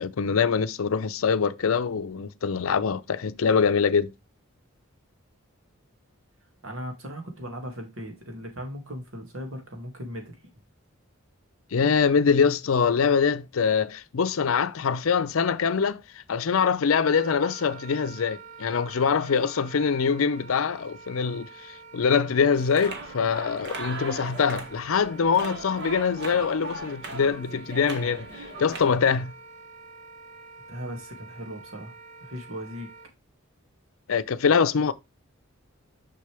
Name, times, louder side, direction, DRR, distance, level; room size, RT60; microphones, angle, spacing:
voice 1, 0.0-4.1 11.7-16.0 16.3-29.3 34.1-34.9, left 6 dB, 85° left, 0.5 m, -24 dB
voice 2, 6.6-10.4 30.7-31.9 32.2-32.9, equal, 75° right, 2.2 m, -37 dB
Wind instrument woodwind instrument, 17.0-33.1, right 4 dB, 40° right, 0.7 m, -47 dB
sound 1, 22.5-29.2, right 2 dB, 55° right, 1.5 m, -38 dB
6.5 x 5.9 x 3.3 m
head